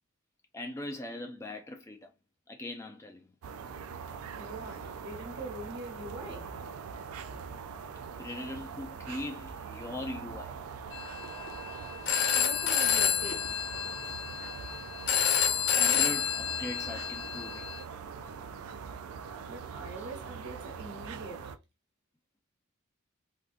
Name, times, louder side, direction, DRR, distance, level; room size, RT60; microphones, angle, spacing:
voice 1, 0.5-2.1 2.5-3.3 8.2-10.6 15.7-17.6 20.0-20.1, left 1 dB, 15° left, 0.3 m, -40 dB
sound 1, 3.4-21.6, right 6 dB, 85° right, 0.4 m, -42 dB
voice 2, 4.4-6.5 12.3-13.4 19.5-21.5, right 2 dB, 50° right, 1.2 m, -43 dB
Telephone, 10.9-17.8, left 8 dB, 55° left, 0.6 m, -29 dB
3.6 x 2.4 x 2.5 m
head